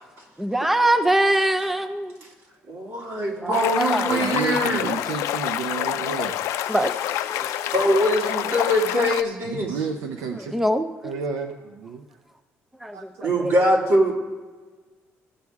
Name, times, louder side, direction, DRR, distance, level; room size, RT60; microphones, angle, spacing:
voice 1, 0.4-2.2 3.4-4.4 6.7-7.7 10.5-11.1 12.8-13.5, right 1 dB, 5° right, 9 dB, 0.5 m, -24 dB
voice 2, 2.7-4.9 7.4-9.7 13.2-14.1, equal, 70° right, -2 dB, 2.7 m, -22 dB
sound 1, 3.5-9.2, left 12 dB, 80° left, 0.4 m, -27 dB
voice 3, 4.1-6.4 9.4-10.5 11.0-12.0 12.9-13.3, right 6 dB, 90° right, 4 dB, 0.6 m, -31 dB
16.0 x 6.3 x 3.5 m, 1.3 s
cardioid pair, 105°, 5 cm